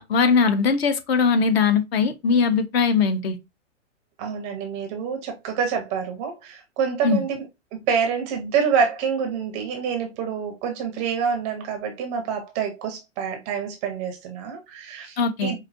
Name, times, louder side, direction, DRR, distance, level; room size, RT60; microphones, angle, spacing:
voice 1, 0.0-3.4 7.0-7.2 15.2-15.5, left 5 dB, 55° left, 0.8 m, -20 dB
voice 2, 4.2-7.5 7.9-15.6, right 6 dB, 20° right, 0.5 m, -27 dB
4.9 x 2.7 x 2.5 m
hypercardioid pair, 140°, 38 cm